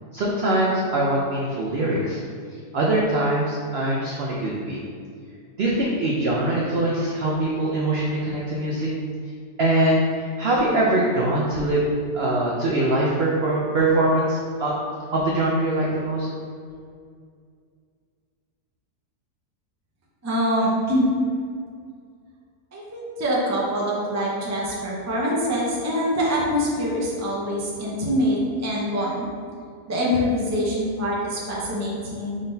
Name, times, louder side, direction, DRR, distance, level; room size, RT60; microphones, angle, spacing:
voice 1, 0.1-2.2 2.7-4.8 5.6-8.9 9.6-11.8 12.1-14.7 15.1-16.3, right 1 dB, 70° right, -3 dB, 0.6 m, -22 dB
voice 2, 20.2-21.1 22.7-29.3 29.9-32.4, equal, 25° right, -5 dB, 0.3 m, -24 dB
4.9 x 3.8 x 2.7 m, 2.2 s
omnidirectional pair, 1.7 m